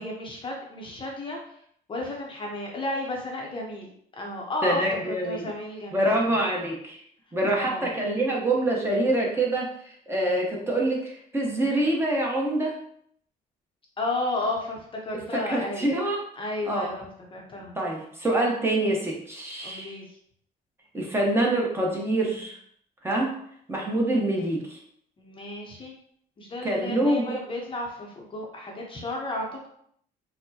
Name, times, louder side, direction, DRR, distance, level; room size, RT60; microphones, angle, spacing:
voice 1, 0.0-1.5 1.9-4.8 5.1-6.1 7.6-7.9 14.0-15.9 16.4-17.8 19.6-20.2 25.2-26.0 26.4-29.5, left 2 dB, 30° left, 0 dB, 0.7 m, -33 dB
voice 2, 4.6-5.5 5.9-7.0 7.3-12.8 15.3-16.2 16.6-16.9 17.7-20.0 20.9-22.6 23.0-23.3 23.7-24.8 26.6-27.4, right 1 dB, 15° right, -2 dB, 0.8 m, -25 dB
4.2 x 2.1 x 2.8 m, 0.66 s
cardioid pair, 110°, 17 cm